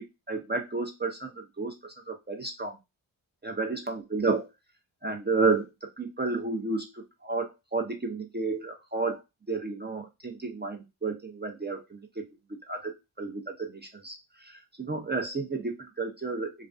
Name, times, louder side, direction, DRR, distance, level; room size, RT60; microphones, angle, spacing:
voice 1, 0.3-2.8 3.4-4.5 5.0-5.7 6.0-9.2 9.5-12.3 12.7-14.1 14.4-16.5, right 3 dB, 20° right, 3 dB, 0.5 m, -31 dB
2.4 x 2.3 x 2.4 m, 0.23 s
cardioid pair, 45°, 50 cm